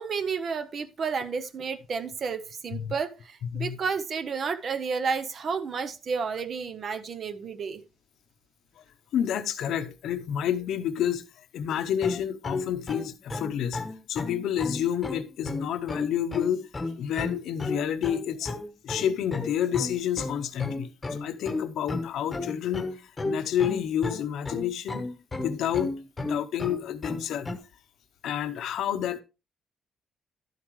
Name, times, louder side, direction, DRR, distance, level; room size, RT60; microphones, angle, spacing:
voice 1, 0.0-7.8, right 5 dB, 45° right, 0.7 m, -31 dB
voice 2, 9.1-11.3 11.5-13.8 14.1-16.7 17.0-18.5 18.8-25.0 25.4-27.5 28.2-29.2, left 9 dB, 75° left, 0.8 m, -29 dB
sound 1, 12.0-27.6, left 2 dB, 20° left, 1.1 m, -33 dB
12.0 x 7.6 x 3.1 m
cardioid pair, 160°, 0 cm